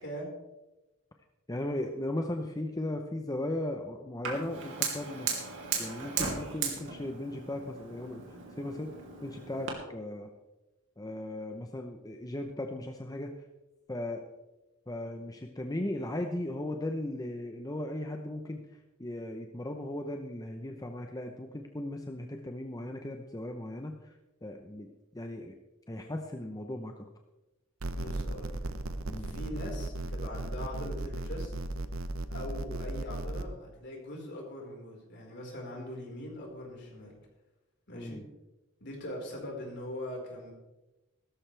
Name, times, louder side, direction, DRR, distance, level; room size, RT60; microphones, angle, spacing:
voice 1, 1.5-5.3 5.8-8.9 9.2-10.3 11.0-13.3 13.9-14.3 14.9-24.2 24.4-25.6 25.9-27.1 29.1-29.3 37.9-38.3, left 1 dB, 20° left, 4 dB, 0.8 m, -37 dB
Fire, 4.2-9.7, right 6 dB, 60° right, 2.9 m, -37 dB
sound 1, 27.8-33.4, right 2 dB, 80° right, 0.9 m, -36 dB
voice 2, 27.9-28.5 29.1-31.5 32.3-37.2 37.9-38.2 38.8-40.5, left 1 dB, 55° left, -1 dB, 4.7 m, -41 dB
16.5 x 13.5 x 3.4 m, 1.0 s
head